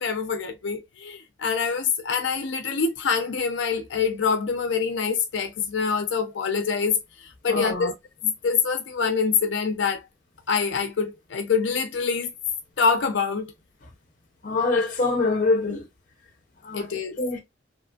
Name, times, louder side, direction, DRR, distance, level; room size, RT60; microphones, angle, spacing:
voice 1, 0.0-7.0 7.4-7.9 8.2-10.1 10.5-12.3 12.8-13.5 16.7-17.2, left 5 dB, 85° left, 0.5 m, -25 dB
voice 2, 7.5-7.9 14.4-15.9 16.6-16.9 17.2-17.4, left 3 dB, 45° left, 0.7 m, -24 dB
3.0 x 2.5 x 2.2 m
head